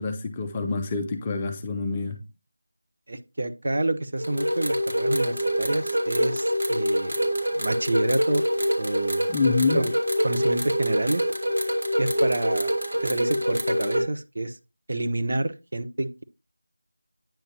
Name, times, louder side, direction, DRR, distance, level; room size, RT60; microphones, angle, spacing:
voice 1, 0.0-2.2 9.3-9.9, left 4 dB, 15° left, 0.4 m, -26 dB
voice 2, 3.1-7.1 7.5-8.4 8.8-9.3 9.7-9.9 10.2-11.2 12.0-12.7 13.0-14.6 14.9-16.2, right 2 dB, 45° right, 0.8 m, -28 dB
sound 1, 4.2-14.0, equal, 75° right, 2.6 m, -25 dB
9.0 x 5.3 x 2.8 m
figure-of-eight pair, 175°, 0 cm